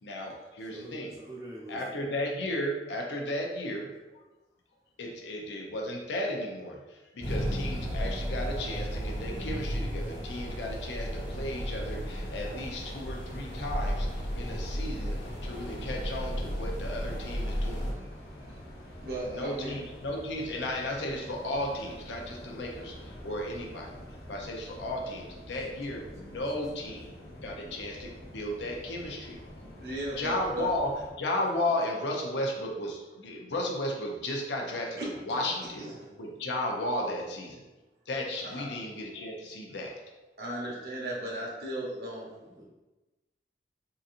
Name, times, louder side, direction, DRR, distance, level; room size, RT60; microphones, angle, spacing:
voice 1, 0.0-1.2 1.7-3.9 5.0-6.8 7.1-14.1 14.3-17.9 19.3-24.0 24.3-27.1 27.4-29.4 30.2-30.9 31.2-35.0 35.3-35.8 36.2-37.6 38.1-39.9, left 1 dB, 90° left, 0 dB, 0.6 m, -34 dB
voice 2, 0.7-2.0 26.2-26.3 42.4-42.6, right 1 dB, 20° right, -4 dB, 0.7 m, -45 dB
sound 1, 7.2-17.9, equal, 30° left, 1.2 m, -34 dB
sound 2, 11.1-31.1, equal, 70° left, 1.1 m, -47 dB
voice 3, 19.0-19.7 29.8-30.7 34.9-35.1 35.8-36.1 38.4-38.7 40.4-42.3, right 1 dB, 60° right, -3 dB, 0.8 m, -36 dB
3.9 x 2.7 x 2.5 m, 1.1 s
head